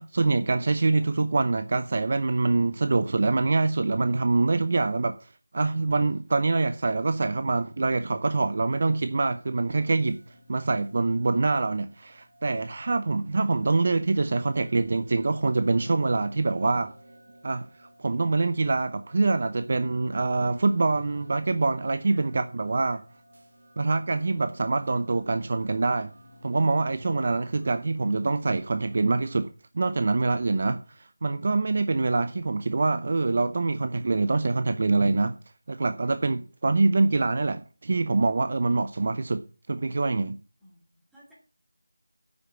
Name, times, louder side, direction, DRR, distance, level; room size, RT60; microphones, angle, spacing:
voice 1, 0.0-10.2 10.5-16.9 17.4-23.0 23.8-26.1 26.4-35.3 35.7-39.4 39.7-40.4, right 3 dB, 35° right, 0.7 m, -25 dB
sound 1, 9.7-29.5, equal, 80° right, 2.4 m, -53 dB
voice 2, 40.6-41.3, right 1 dB, ahead, 2.8 m, -54 dB
8.8 x 8.6 x 7.2 m
figure-of-eight pair, 175°, 0 cm